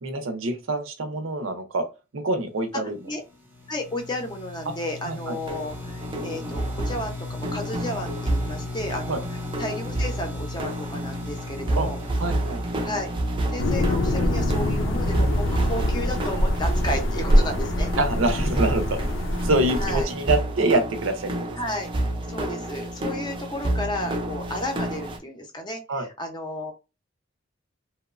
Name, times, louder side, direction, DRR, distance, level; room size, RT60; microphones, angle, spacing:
voice 1, 0.0-1.8 2.1-3.0 5.1-5.4 9.1-9.2 11.8-11.9 12.2-12.6 18.0-19.0 19.4-21.3 25.9-26.1, right 2 dB, 90° right, 7 dB, 0.6 m, -25 dB
sound 1, 3.1-14.9, left 3 dB, 10° right, 0.8 m, -38 dB
voice 2, 3.7-9.2 9.6-12.0 12.8-13.1 13.5-17.9 19.8-20.1 21.6-21.9 22.3-26.7, left 1 dB, 20° left, 4 dB, 0.5 m, -33 dB
sound 2, 5.5-25.2, right 1 dB, 25° right, 0.4 m, -30 dB
sound 3, 13.6-20.0, left 1 dB, 70° left, 0.5 m, -24 dB
2.9 x 2.0 x 2.4 m, 0.27 s
head